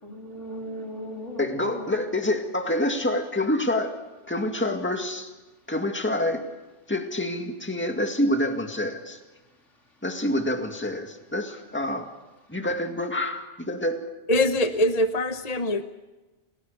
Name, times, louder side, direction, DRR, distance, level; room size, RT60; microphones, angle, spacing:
voice 1, 0.0-2.1, equal, 80° left, 1 dB, 4.1 m, -37 dB
voice 2, 1.4-3.9 4.3-5.3 5.7-6.4 6.9-9.2 10.0-12.1 12.5-14.0, left 1 dB, 10° left, 4 dB, 2.1 m, -27 dB
voice 3, 14.3-15.8, left 1 dB, 35° left, 8 dB, 1.0 m, -23 dB
30.0 x 18.5 x 6.8 m, 1.1 s
omnidirectional pair, 1.2 m